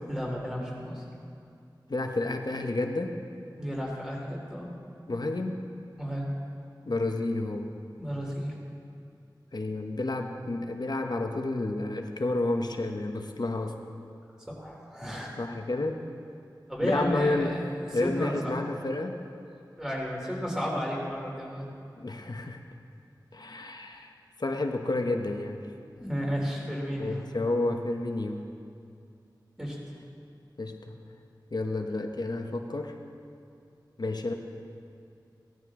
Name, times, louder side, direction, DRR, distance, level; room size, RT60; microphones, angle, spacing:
voice 1, 0.1-1.0 3.6-4.7 6.0-6.3 8.0-8.5 14.5-15.3 16.7-17.6 17.9-18.5 19.8-21.7 25.9-27.2 29.6-29.8, equal, 5° right, -4 dB, 3.4 m, -32 dB
voice 2, 1.9-3.2 5.1-5.7 6.9-7.7 9.5-13.8 15.4-16.0 16.8-17.6 17.9-19.2 22.0-22.6 23.3-24.1 24.4-25.6 27.0-28.5 30.6-31.0 31.5-33.0 34.0-34.3, left 2 dB, 60° left, 4 dB, 1.0 m, -30 dB
17.0 x 12.5 x 3.8 m, 2.5 s
wide cardioid pair, 60°, 8 cm